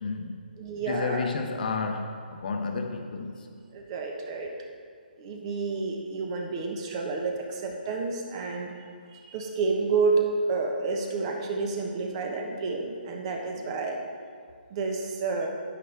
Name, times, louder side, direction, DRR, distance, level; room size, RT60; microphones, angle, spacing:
voice 1, 0.0-0.4 0.9-3.6, left 4 dB, 55° left, 5 dB, 0.9 m, -31 dB
voice 2, 0.6-1.3 3.7-4.5 5.2-8.7 9.1-14.0 14.7-15.5, right 4 dB, 35° right, 2 dB, 1.1 m, -29 dB
9.9 x 8.7 x 3.4 m, 2.1 s
hypercardioid pair, 150°, 5 cm